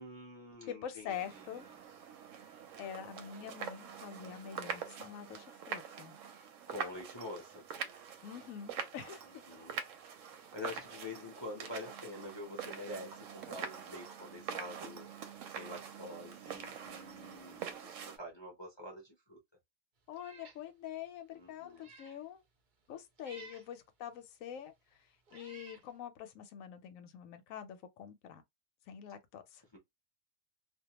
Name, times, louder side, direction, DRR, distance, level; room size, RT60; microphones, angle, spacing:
voice 1, 0.0-1.5 6.7-7.6 9.3-9.8 10.5-19.4 21.3-21.9 29.7-29.8, left 1 dB, 30° left, 0.5 m, -46 dB
voice 2, 0.7-1.7 2.8-6.2 8.2-9.4 20.1-22.4 22.9-28.4 28.9-29.6, left 9 dB, 75° left, 0.9 m, -45 dB
sound 1, 1.1-18.2, right 7 dB, 70° right, 0.9 m, -45 dB
Meow, 20.1-20.6 21.1-21.2 21.7-22.2 23.2-23.7 24.6-24.7 25.3-25.9, right 4 dB, 55° right, 0.5 m, -55 dB
2.3 x 2.2 x 2.9 m
omnidirectional pair, 1.5 m